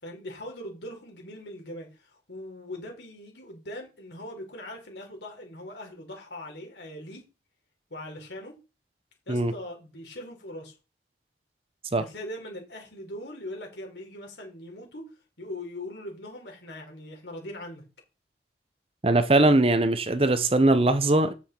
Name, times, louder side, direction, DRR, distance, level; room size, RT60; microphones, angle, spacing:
voice 1, 0.0-7.3 7.9-8.6 9.3-10.7 11.9-15.0 15.4-17.8, left 1 dB, 80° left, 3.9 m, -41 dB
voice 2, 19.0-21.3, right 2 dB, 30° right, 0.8 m, -21 dB
8.5 x 7.3 x 4.5 m
head